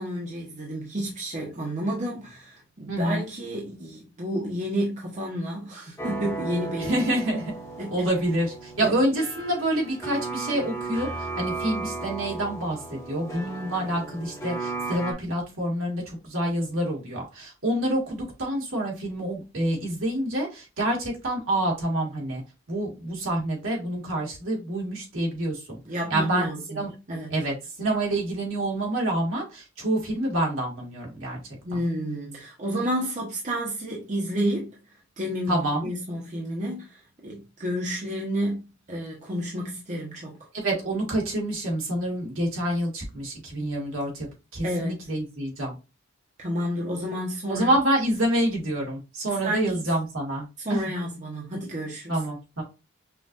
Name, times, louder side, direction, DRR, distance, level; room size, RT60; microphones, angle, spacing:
voice 1, 0.0-7.1 7.8-8.0 8.8-8.9 25.9-26.8 27.1-27.3 31.6-34.8 35.2-40.4 44.6-45.0 46.4-47.7 49.4-49.8 50.6-52.2, equal, 35° right, 1.0 m, -30 dB
voice 2, 2.9-3.3 6.8-7.5 7.9-22.4 22.7-25.8 26.1-26.5 26.7-26.9 27.3-31.4 31.7-31.8 35.5-35.9 40.5-44.3 44.5-45.8 47.5-50.8 52.1-52.6, right 1 dB, 70° right, 1.9 m, -27 dB
sound 1, 6.0-15.1, right 3 dB, 15° left, 0.9 m, -35 dB
5.7 x 2.5 x 2.6 m
head